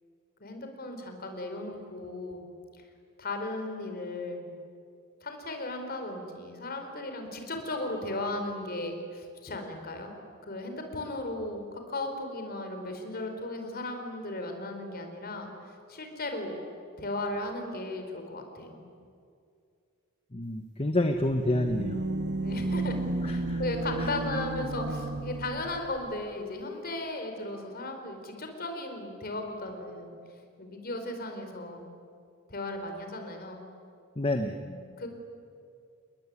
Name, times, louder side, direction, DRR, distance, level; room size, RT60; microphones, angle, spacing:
voice 1, 0.4-2.5 2.7-2.8 3.2-4.5 5.2-10.1 10.4-16.6 17.0-18.9 22.4-23.0 23.2-30.1 30.6-31.9 32.5-33.6 34.6-35.1, left 2 dB, 45° left, 5 dB, 4.6 m, -36 dB
voice 2, 20.3-22.0 23.2-23.6 24.0-24.1 34.2-34.5, left 1 dB, 25° left, 6 dB, 1.2 m, -28 dB
sound 1, 21.0-25.9, right 2 dB, 55° right, 1.3 m, -33 dB
29.5 x 21.0 x 9.8 m, 2.4 s
head